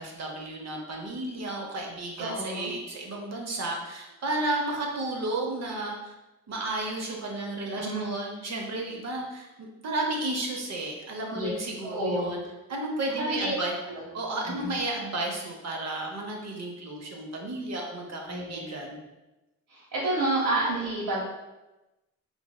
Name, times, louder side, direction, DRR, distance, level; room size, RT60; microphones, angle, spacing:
voice 1, 0.0-6.1 6.5-12.4 12.7-13.7 14.1-19.0, right 2 dB, 50° right, 0 dB, 0.7 m, -33 dB
voice 2, 2.2-2.7 7.7-8.1 11.3-11.5 11.8-12.3 13.2-13.6 13.8-14.0 14.4-14.7 18.3-18.6 19.7-21.2, right 2 dB, 80° right, -8 dB, 0.9 m, -29 dB
3.1 x 2.6 x 2.2 m, 1.0 s
cardioid pair, 80°, 35 cm